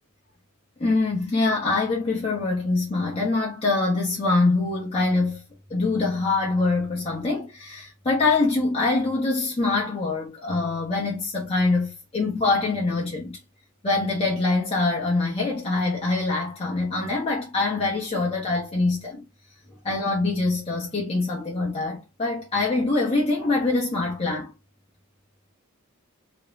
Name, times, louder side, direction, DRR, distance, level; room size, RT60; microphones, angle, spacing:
voice 1, 0.8-5.4 5.7-13.4 13.8-19.2 19.8-24.5, left 3 dB, 25° left, 0.5 m, -24 dB
2.4 x 2.0 x 3.0 m
head